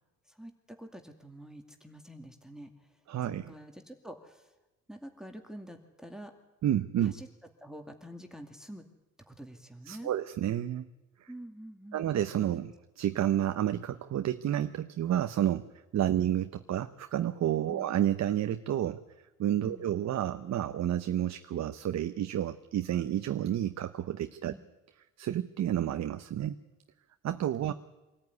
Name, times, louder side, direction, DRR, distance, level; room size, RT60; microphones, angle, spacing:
voice 1, 0.3-3.0 3.5-4.5 4.9-6.3 7.0-7.3 7.6-8.9 9.3-10.1 11.3-12.1 16.1-16.3 17.7-17.9 19.6-19.9 24.5-24.6 27.6-27.7, equal, ahead, 5 dB, 2.3 m, -47 dB
voice 2, 3.1-3.5 6.6-7.1 9.9-10.9 11.2-11.3 11.9-19.0 19.4-24.5 25.2-26.6 27.2-27.7, right 11 dB, 60° right, 9 dB, 0.9 m, -30 dB
24.5 x 14.0 x 9.6 m, 1.0 s
cardioid pair, 90°, 30 cm